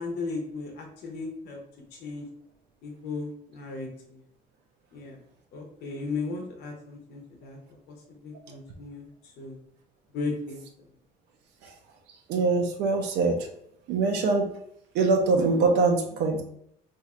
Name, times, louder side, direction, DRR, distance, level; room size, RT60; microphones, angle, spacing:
voice 1, 0.0-1.6 1.9-2.2 2.8-4.2 4.9-5.2 5.5-7.6 7.9-9.1 9.4-9.6 10.1-10.6, left 3 dB, 75° left, 1 dB, 0.8 m, -36 dB
voice 2, 12.3-13.5 13.9-14.5 14.9-16.4, right 3 dB, 80° right, 2 dB, 0.5 m, -23 dB
2.6 x 2.4 x 4.1 m, 0.72 s
cardioid pair, 110°, 17 cm